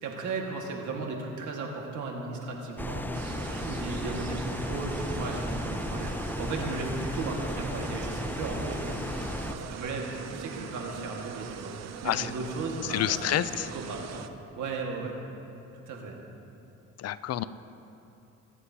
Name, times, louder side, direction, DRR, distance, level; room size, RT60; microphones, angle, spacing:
voice 1, 0.0-3.1 3.6-9.2 9.5-11.7 12.0-14.3 14.6-15.2 15.7-16.2, right 3 dB, 75° right, 0 dB, 1.7 m, -36 dB
sound 1, 2.8-9.5, left 1 dB, 5° left, 0.5 m, -35 dB
sound 2, 3.1-14.3, right 7 dB, 60° right, 0.7 m, -42 dB
voice 2, 12.9-13.7 17.0-17.4, left 11 dB, 55° left, 14 dB, 0.5 m, -28 dB
19.5 x 10.0 x 2.8 m, 2.9 s
cardioid pair, 90°, 30 cm